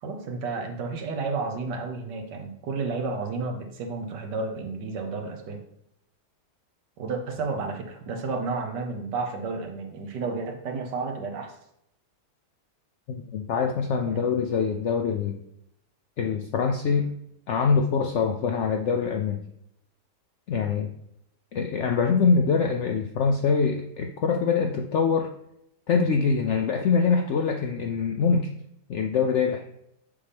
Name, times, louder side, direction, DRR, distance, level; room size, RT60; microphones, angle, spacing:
voice 1, 0.0-5.6 7.0-11.5 14.1-14.3, right 4 dB, 90° right, 4 dB, 1.6 m, -31 dB
voice 2, 13.1-15.4 16.2-17.1 17.5-19.4 20.5-20.9 21.5-25.3 25.9-28.5 28.9-29.6, left 5 dB, 80° left, 4 dB, 0.6 m, -24 dB
6.9 x 5.5 x 3.4 m, 0.77 s
omnidirectional pair, 1.8 m